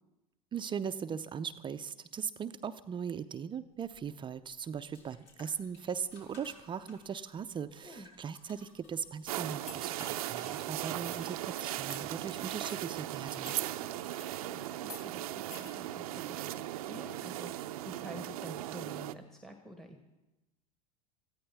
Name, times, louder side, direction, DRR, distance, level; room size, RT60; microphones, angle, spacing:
voice 1, 0.5-13.5, right 7 dB, 25° right, 11 dB, 0.5 m, -39 dB
sound 1, 3.8-12.6, left 2 dB, 60° left, 4.2 m, -62 dB
voice 2, 7.7-8.1 13.7-20.0, equal, ahead, 5 dB, 1.2 m, -49 dB
sound 2, 9.3-19.1, right 14 dB, 75° right, 0.6 m, -38 dB
sound 3, 9.4-14.4 14.8-15.0 15.5-15.7, left 3 dB, 80° left, 3.5 m, -52 dB
19.5 x 14.0 x 3.5 m, 1.0 s
hypercardioid pair, 90°, 19 cm